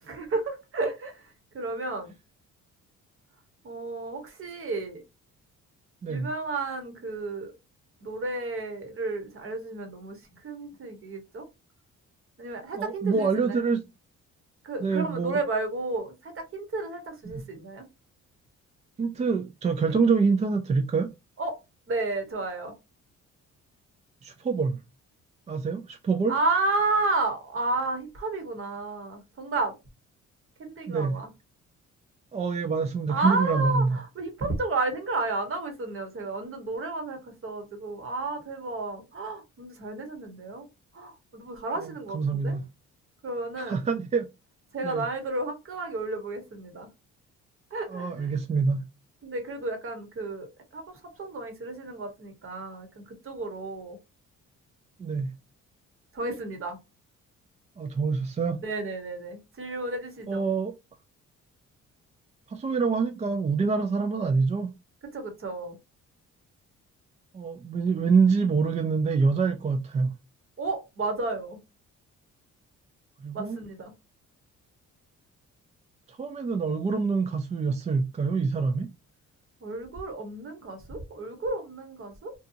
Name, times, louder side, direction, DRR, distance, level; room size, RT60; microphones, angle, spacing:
voice 1, 0.0-2.1 3.6-5.0 6.1-7.5 8.0-11.5 12.4-13.6 14.6-17.9 21.4-21.6 21.9-22.7 26.3-29.7 30.6-31.3 33.1-40.7 40.9-42.6 43.2-43.8 44.7-46.9 47.7-48.3 49.2-54.0 56.1-56.8 58.6-60.4 65.1-65.8 70.6-71.6 73.3-73.9 79.6-82.3, right 3 dB, 45° right, 1.1 m, -32 dB
voice 2, 12.7-13.8 14.8-15.4 17.3-17.4 19.0-21.1 24.2-24.8 25.5-26.3 30.9-31.2 32.3-34.0 41.8-42.6 43.6-44.3 44.8-45.1 47.9-48.8 55.0-55.3 57.8-58.6 60.3-60.7 62.5-64.8 67.3-70.1 73.2-73.6 76.1-78.9, right 4 dB, 25° right, 0.3 m, -26 dB
2.8 x 2.3 x 2.6 m
cardioid pair, 90°, 30 cm